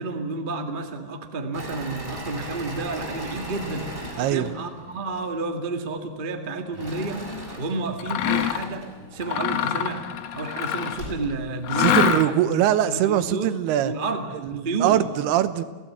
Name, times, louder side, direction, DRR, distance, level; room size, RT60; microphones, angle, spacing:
voice 1, 0.0-3.9 4.2-7.2 7.6-8.9 9.1-10.0 10.3-13.5 13.8-15.0, right 3 dB, 65° right, 5 dB, 0.5 m, -30 dB
Engine / Mechanisms, 1.5-5.3 6.7-9.7 10.3-10.4 10.7-11.3, equal, 15° right, 3.6 m, -38 dB
voice 2, 4.2-4.5 11.8-13.9 14.4-15.6, right 11 dB, 80° right, 13 dB, 3.0 m, -22 dB
Mechanisms, 8.0-8.7 9.2-11.1 11.6-12.5, left 10 dB, 80° left, 1.4 m, -25 dB
Slam, 8.8-12.7 13.0-13.4, left 1 dB, 25° left, 8.0 m, -43 dB
28.5 x 16.5 x 8.6 m, 1.4 s
omnidirectional pair, 4.6 m